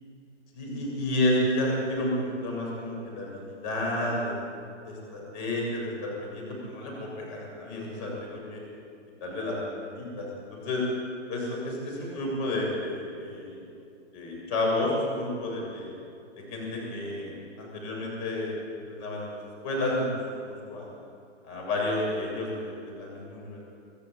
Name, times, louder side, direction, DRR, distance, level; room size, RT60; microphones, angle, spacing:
voice 1, 0.5-4.4 4.8-8.6 9.2-10.3 10.5-10.8 11.3-13.6 14.1-15.9 16.5-17.3 17.6-18.6 18.9-19.3 19.6-20.1 20.4-20.9 21.4-23.6, left 1 dB, 30° left, -2 dB, 7.4 m, -31 dB
26.0 x 13.5 x 8.6 m, 2.7 s
hypercardioid pair, 150°, 37 cm